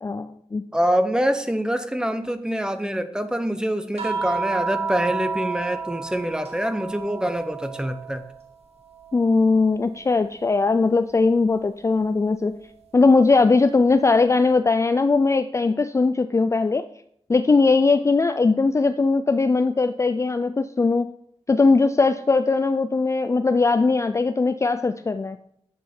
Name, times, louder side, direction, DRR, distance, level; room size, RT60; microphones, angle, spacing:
voice 1, 0.0-0.6 9.1-12.5 12.9-16.8 17.3-21.1 21.5-25.4, left 3 dB, 25° left, 10 dB, 0.3 m, -20 dB
voice 2, 0.7-8.2, equal, 5° right, 9 dB, 0.7 m, -25 dB
sound 1, 4.0-8.5 8.8-10.4 12.0-12.1, right 4 dB, 75° right, 1.8 m, -32 dB
9.2 x 7.6 x 4.4 m, 0.70 s
wide cardioid pair, 130°, 11 cm